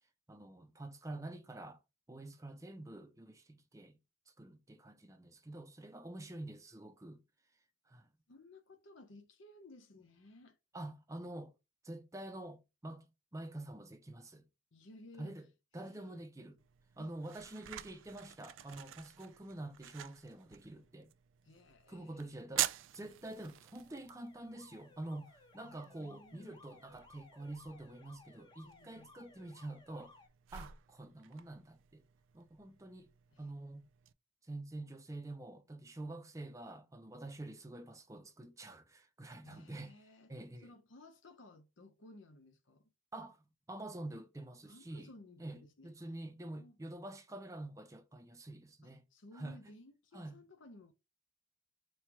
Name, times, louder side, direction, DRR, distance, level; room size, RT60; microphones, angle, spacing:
voice 1, 0.3-1.8 2.1-4.0 4.3-7.2 7.9-8.1 10.7-11.5 11.8-13.0 13.3-14.4 15.2-15.5 15.7-16.6 17.0-21.1 21.9-30.1 30.5-32.0 32.3-33.1 33.4-33.8 34.4-39.9 40.3-40.7 43.1-45.1 45.4-49.0 49.3-49.6 50.1-50.3, right 1 dB, 15° right, 0.5 m, -47 dB
voice 2, 8.3-10.6 14.7-15.4 15.8-16.2 17.0-17.1 21.4-22.5 25.6-26.6 28.6-29.1 33.3-33.5 39.4-40.3 40.6-42.9 44.6-46.8 48.8-50.9, left 2 dB, 80° left, 0.8 m, -58 dB
sound 1, 16.6-34.1, right 13 dB, 85° right, 0.4 m, -47 dB
Alarm, 23.8-30.3, left 3 dB, 25° left, 0.7 m, -61 dB
4.4 x 2.3 x 4.6 m
head